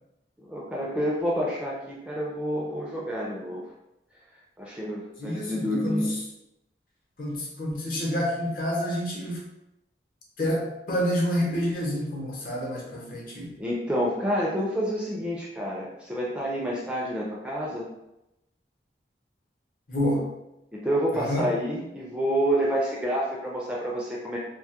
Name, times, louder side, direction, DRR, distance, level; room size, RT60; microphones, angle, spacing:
voice 1, 0.4-3.6 4.6-6.1 13.6-17.9 20.7-24.4, equal, 5° right, -4 dB, 0.3 m, -28 dB
voice 2, 5.2-6.2 7.2-9.4 10.4-13.5 19.9-20.3 21.1-21.5, equal, 50° left, -2 dB, 0.6 m, -28 dB
2.2 x 2.0 x 2.8 m, 0.89 s
head